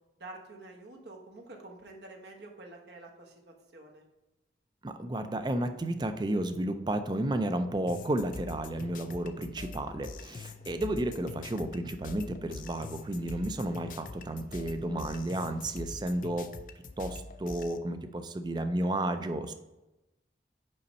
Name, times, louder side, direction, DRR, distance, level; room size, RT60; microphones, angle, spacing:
voice 1, 0.2-4.0, right 2 dB, 70° right, 0 dB, 1.1 m, -48 dB
voice 2, 4.8-16.5 17.0-19.5, right 1 dB, 25° right, 9 dB, 0.4 m, -32 dB
sound 1, 7.9-17.8, left 3 dB, 45° left, 0.4 m, -44 dB
5.4 x 5.2 x 4.1 m, 1.0 s
head